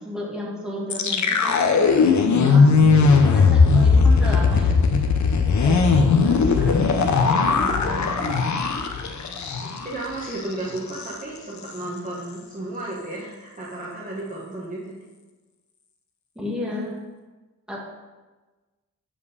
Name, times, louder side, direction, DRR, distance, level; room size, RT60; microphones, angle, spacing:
voice 1, 0.0-2.7 3.2-4.8 5.4-6.8 7.1-8.4 16.4-17.0 17.7-17.8, left 1 dB, ahead, -5 dB, 1.8 m, -33 dB
sound 1, 0.9-9.9 10.2-10.4 10.8-11.1, left 4 dB, 60° left, 0.7 m, -18 dB
voice 2, 9.6-14.9, right 2 dB, 25° right, -6 dB, 1.2 m, -33 dB
7.4 x 5.3 x 4.8 m, 1.2 s
wide cardioid pair, 165°, 32 cm